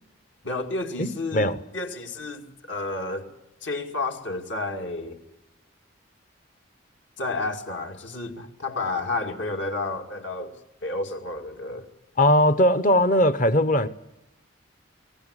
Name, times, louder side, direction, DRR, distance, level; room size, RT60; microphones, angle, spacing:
voice 1, 0.4-3.3 3.6-5.2 7.2-10.6 10.8-11.9, left 2 dB, 70° left, 2.4 m, -31 dB
voice 2, 1.0-1.5 12.2-13.9, left 1 dB, 40° left, 0.9 m, -20 dB
23.5 x 18.0 x 9.8 m
head